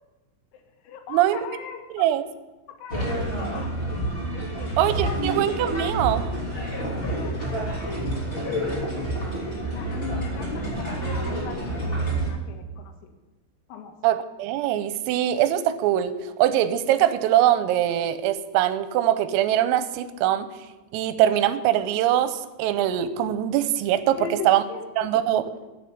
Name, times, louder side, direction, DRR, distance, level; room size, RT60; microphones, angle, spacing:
voice 1, 0.5-2.1 2.7-3.7 4.3-5.3 6.8-9.1 9.7-13.1 13.7-14.0 24.1-25.1, left 6 dB, 90° left, 4 dB, 4.3 m, -40 dB
sound 1, 2.9-12.3, right 1 dB, 15° left, 2.0 m, -28 dB
voice 2, 4.8-6.3 14.0-16.1 16.4-20.5 20.9-24.2 24.5-24.6 25.0-25.5, right 12 dB, 90° right, 12 dB, 3.4 m, -22 dB
14.5 x 7.1 x 7.9 m, 1.1 s
omnidirectional pair, 6.0 m